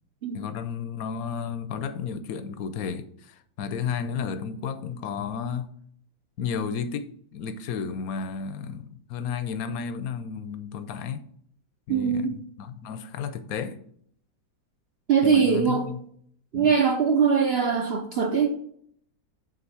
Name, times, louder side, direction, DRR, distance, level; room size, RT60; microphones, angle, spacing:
voice 1, 0.3-5.7 6.4-11.2 11.9-13.8 15.2-16.0 16.5-16.7, left 6 dB, 65° left, 0.9 m, -33 dB
voice 2, 11.9-12.3 15.1-15.9 16.5-18.6, right 6 dB, 65° right, 0.6 m, -22 dB
8.8 x 3.8 x 6.9 m
omnidirectional pair, 2.1 m